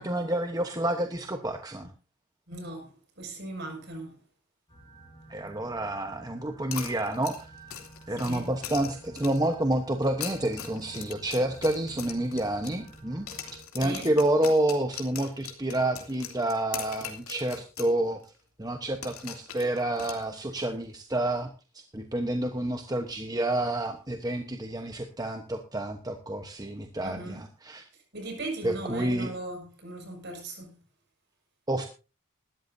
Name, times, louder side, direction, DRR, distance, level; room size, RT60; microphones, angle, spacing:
voice 1, 0.0-1.9 5.3-7.4 8.1-13.3 13.7-18.2 18.6-27.8 28.6-29.3 31.7-31.9, right 1 dB, 15° right, 1.0 m, -29 dB
voice 2, 2.5-2.9 3.2-4.2 8.2-8.5 13.8-14.1 27.0-27.4 28.1-30.7, right 1 dB, 50° right, 6.2 m, -38 dB
sound 1, 4.7-13.6, right 2 dB, 25° left, 5.3 m, -51 dB
sound 2, 6.7-9.5 10.0-13.0 13.3-17.9 18.2-18.3 19.0-20.6, left 8 dB, 85° left, 2.9 m, -41 dB
19.0 x 13.0 x 2.7 m
head